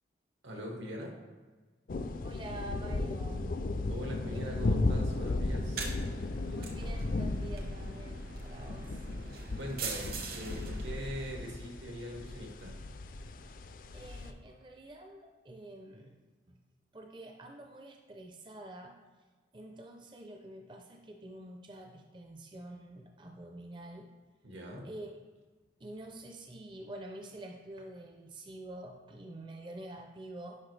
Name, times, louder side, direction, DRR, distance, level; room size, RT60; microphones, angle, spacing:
voice 1, 0.4-1.2 3.9-6.0 9.6-12.7 24.4-24.9, equal, 85° right, 0 dB, 1.6 m, -42 dB
sound 1, 1.9-14.3, left 2 dB, 50° left, 0.4 m, -35 dB
voice 2, 2.2-3.6 4.3-4.4 6.4-9.0 13.9-16.2 16.5-16.6 16.9-19.0 19.5-24.1 24.8-25.1 25.8-30.6, right 1 dB, 25° right, 3 dB, 0.5 m, -47 dB
sound 2, 5.5-11.9, right 3 dB, 55° right, 0.9 m, -42 dB
9.8 x 5.2 x 3.3 m, 1.4 s
head